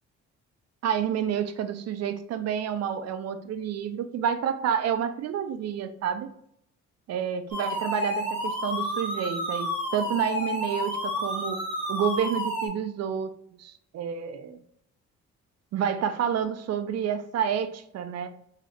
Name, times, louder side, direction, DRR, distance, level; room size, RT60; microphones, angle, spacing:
voice 1, 0.8-6.3 7.1-11.6 11.9-13.3 13.6-14.6 15.7-18.3, right 8 dB, 60° right, 10 dB, 0.5 m, -29 dB
sound 1, 7.5-12.7, equal, 15° left, 1.5 m, -30 dB
3.2 x 2.8 x 2.4 m, 0.71 s
cardioid pair, 90°, 30 cm